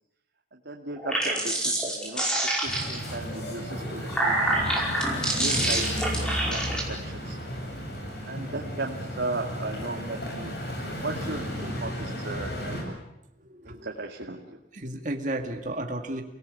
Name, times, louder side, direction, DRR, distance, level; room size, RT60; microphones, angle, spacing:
voice 1, 0.5-4.5 5.1-5.9 6.3-7.4 8.3-10.5 10.9-13.0 13.6-14.6, right 2 dB, 70° right, 1 dB, 2.3 m, -36 dB
sound 1, 0.9-3.1 3.8-6.8, right 1 dB, 5° left, 5.1 m, -27 dB
sound 2, 2.7-12.8, equal, 60° left, 7.7 m, -34 dB
voice 2, 13.4-13.9 14.7-16.2, right 1 dB, 45° right, 3 dB, 2.4 m, -33 dB
30.0 x 18.0 x 8.5 m, 0.85 s
head